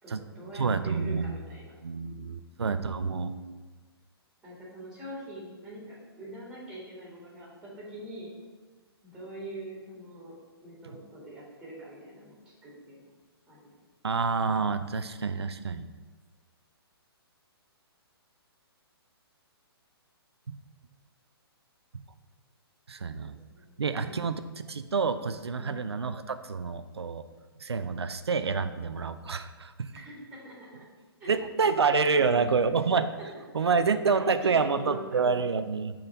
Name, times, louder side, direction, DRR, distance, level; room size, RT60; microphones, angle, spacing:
voice 1, 0.0-1.7 4.4-8.3 9.0-10.3 10.6-13.1 13.5-13.8 23.2-24.1 25.6-25.8 29.9-30.9 31.2-31.3 32.1-32.7 33.2-33.3 33.5-33.7 34.2-35.2, right 1 dB, 5° right, -6 dB, 1.9 m, -43 dB
voice 2, 0.5-1.4 1.8-3.6 14.0-15.9 22.9-23.3 23.8-24.4 24.7-27.3 27.6-29.9 31.3-33.1 33.5-35.9, right 5 dB, 80° right, 10 dB, 0.4 m, -28 dB
5.8 x 3.8 x 5.3 m, 1.3 s
figure-of-eight pair, 125°, 13 cm